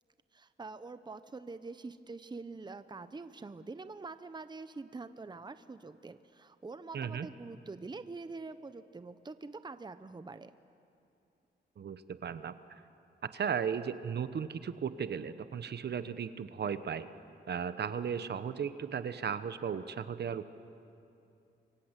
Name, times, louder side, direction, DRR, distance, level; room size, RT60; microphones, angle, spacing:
voice 1, 0.3-10.5, right 3 dB, 25° right, 12 dB, 0.9 m, -45 dB
voice 2, 6.9-7.3 11.8-12.8 13.3-17.1 17.5-20.5, right 7 dB, 60° right, 12 dB, 1.1 m, -36 dB
26.5 x 24.0 x 8.3 m, 2.7 s
cardioid pair, 85°, 19 cm